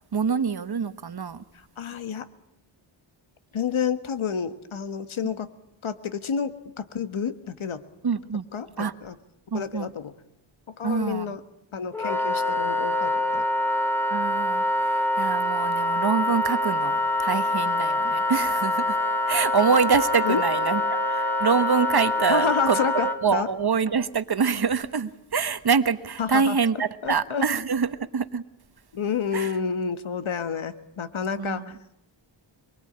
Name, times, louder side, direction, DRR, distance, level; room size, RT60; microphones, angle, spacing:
voice 1, 0.1-1.4 8.0-8.5 8.8-8.9 9.5-9.9 10.8-11.3 14.1-19.0 19.3-28.4 29.3-29.5 31.4-31.7, right 6 dB, 50° right, 11 dB, 1.3 m, -25 dB
voice 2, 1.8-2.3 3.5-5.5 5.8-7.8 8.5-9.1 9.5-10.1 10.8-11.4 11.7-13.4 20.2-20.4 22.3-23.5 26.2-26.5 27.0-27.4 28.9-31.7, left 6 dB, 70° left, 11 dB, 1.6 m, -29 dB
Wind instrument woodwind instrument, 11.9-23.2, left 1 dB, 5° left, 2.1 m, -25 dB
24.5 x 23.0 x 8.8 m, 0.80 s
wide cardioid pair, 100°, 49 cm